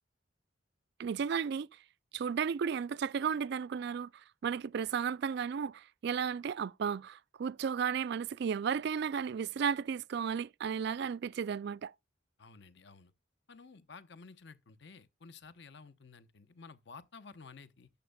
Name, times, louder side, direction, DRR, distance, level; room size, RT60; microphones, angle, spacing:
voice 1, 1.0-1.7 2.1-11.9, right 7 dB, 60° right, 0.3 m, -34 dB
voice 2, 12.4-13.1 13.5-17.9, left 4 dB, 65° left, 0.9 m, -53 dB
12.0 x 7.0 x 2.2 m
head